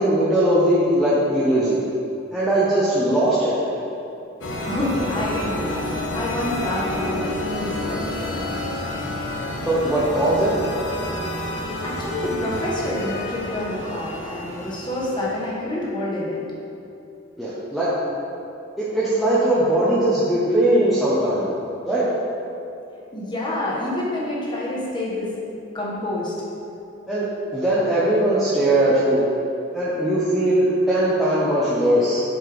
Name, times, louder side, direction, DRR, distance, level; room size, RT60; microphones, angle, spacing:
voice 1, 0.0-1.8 2.3-3.6 9.7-10.5 17.4-17.9 18.8-21.5 21.9-22.1 27.1-27.2 27.5-29.2 29.7-32.2, right 1 dB, ahead, -11 dB, 0.8 m, -20 dB
sound 1, 4.4-15.5, left 1 dB, 70° left, 0.7 m, -29 dB
voice 2, 4.6-8.4 11.8-16.4 23.1-25.3 25.7-26.3, left 1 dB, 25° left, -5 dB, 1.2 m, -27 dB
7.8 x 4.4 x 3.5 m, 2.8 s
head